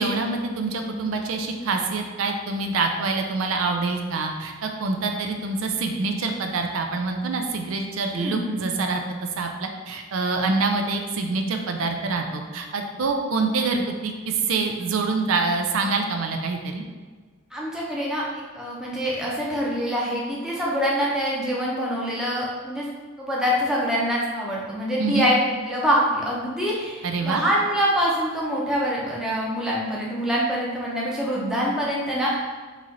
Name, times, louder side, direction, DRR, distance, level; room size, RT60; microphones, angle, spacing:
voice 1, 0.0-9.0 9.4-16.8 25.0-25.3 27.0-27.4, right 3 dB, 80° right, 4 dB, 0.5 m, -26 dB
voice 2, 8.1-8.7 17.5-18.2 18.5-22.9 23.2-25.4 25.7-32.4, equal, 5° right, -5 dB, 0.8 m, -25 dB
4.1 x 3.1 x 3.8 m, 1.4 s
head